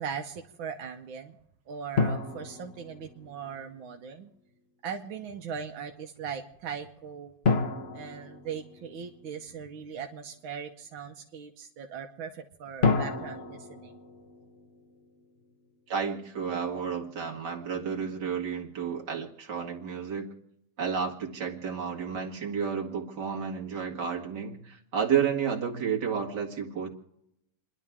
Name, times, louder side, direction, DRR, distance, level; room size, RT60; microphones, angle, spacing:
voice 1, 0.0-1.4 1.7-4.3 4.8-7.3 7.9-14.0, right 7 dB, 90° right, 3 dB, 1.8 m, -39 dB
sound 1, 2.0-3.6 7.4-9.3 12.8-15.1, left 4 dB, 40° left, 1.1 m, -30 dB
voice 2, 15.9-20.3 20.8-26.9, right 7 dB, 60° right, 0 dB, 2.6 m, -31 dB
29.5 x 11.5 x 3.6 m, 0.81 s
omnidirectional pair, 2.1 m